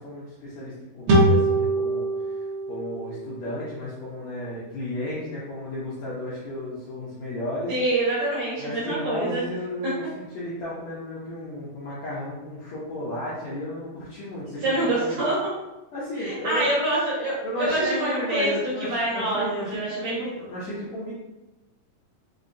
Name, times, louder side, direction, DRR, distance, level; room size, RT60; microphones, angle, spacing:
voice 1, 0.0-7.7 8.6-15.2 15.9-16.7 17.4-21.1, left 1 dB, 75° left, -8 dB, 1.7 m, -33 dB
sound 1, 1.1-4.4, right 1 dB, 90° right, 1.4 m, -24 dB
voice 2, 7.7-9.4 14.6-15.4 16.2-18.5 18.8-20.3, right 1 dB, 70° right, -7 dB, 1.8 m, -26 dB
5.3 x 2.1 x 2.5 m, 1.0 s
omnidirectional pair, 4.0 m